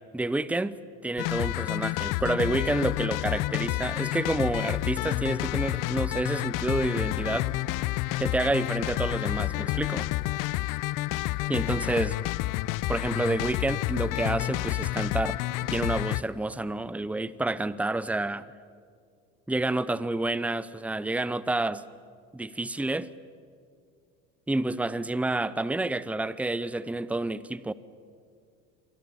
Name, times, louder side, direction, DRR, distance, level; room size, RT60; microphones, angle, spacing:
voice 1, 0.1-0.8 1.0-7.5 8.2-10.1 11.5-12.2 12.9-15.4 15.7-18.5 19.5-21.8 22.3-23.1 24.5-27.7, right 2 dB, 5° right, 0.8 m, -29 dB
sound 1, 1.2-16.2, left 18 dB, 50° left, 0.8 m, -29 dB
29.5 x 24.0 x 7.3 m
hypercardioid pair, 75°, 40 cm